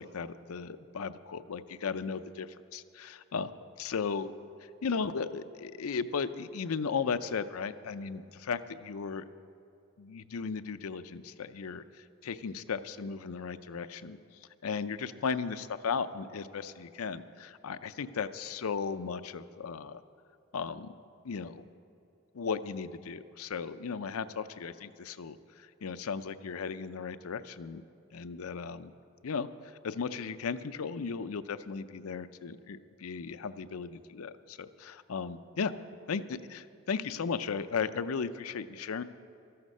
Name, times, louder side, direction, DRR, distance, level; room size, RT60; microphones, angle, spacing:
voice 1, 0.0-3.5 3.8-4.3 4.6-9.2 10.0-14.2 14.6-20.0 20.5-20.9 21.2-21.6 22.3-27.8 28.1-28.9 29.2-35.7 36.1-39.0, left 5 dB, 90° left, 12 dB, 0.5 m, -36 dB
13.5 x 12.5 x 5.4 m, 2.6 s
head